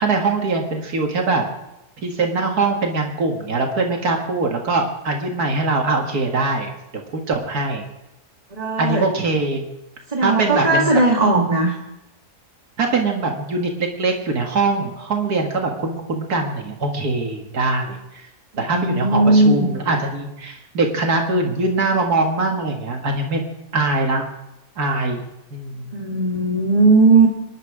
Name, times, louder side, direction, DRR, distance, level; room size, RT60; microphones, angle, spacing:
voice 1, 0.0-1.4 2.0-6.7 7.3-7.8 8.8-9.6 10.2-10.9 12.8-18.3 18.6-23.4 23.7-24.2 24.8-25.2 25.5-25.9, right 3 dB, 80° right, 2 dB, 2.2 m, -22 dB
voice 2, 8.5-9.0 10.1-11.8 18.5-19.7 25.9-27.3, right 3 dB, 25° right, 0 dB, 1.9 m, -17 dB
26.0 x 11.0 x 4.8 m, 0.90 s
omnidirectional pair, 1.6 m